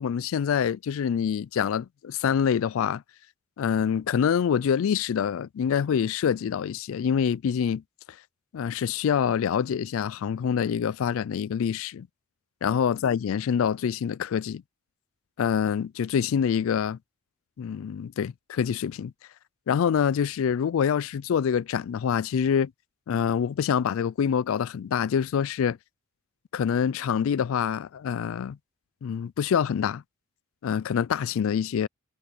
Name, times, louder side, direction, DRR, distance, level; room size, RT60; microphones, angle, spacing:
voice 1, 0.0-3.0 3.6-7.8 8.5-12.1 12.6-14.6 15.4-17.0 17.6-19.1 19.7-22.7 23.1-25.8 26.5-28.6 29.0-30.0 30.6-31.9, left 7 dB, 65° left, 0.3 m, -26 dB
head